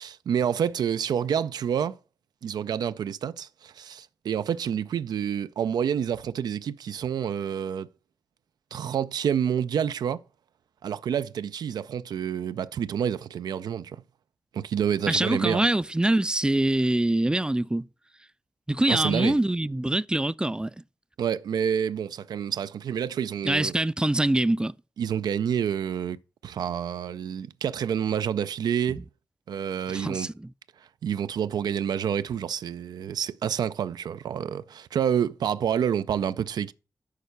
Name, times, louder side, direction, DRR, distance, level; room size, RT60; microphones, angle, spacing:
voice 1, 0.0-2.0 2.4-7.9 8.7-10.2 10.8-14.0 14.5-15.6 18.9-19.4 21.2-23.7 25.0-26.2 26.4-29.0 29.5-30.3 31.0-36.7, right 8 dB, 85° right, 0.3 m, -28 dB
voice 2, 15.1-17.9 18.7-20.7 23.4-24.7 29.9-30.5, right 1 dB, 15° right, 0.3 m, -24 dB
6.5 x 4.6 x 6.7 m
cardioid pair, 40°, 7 cm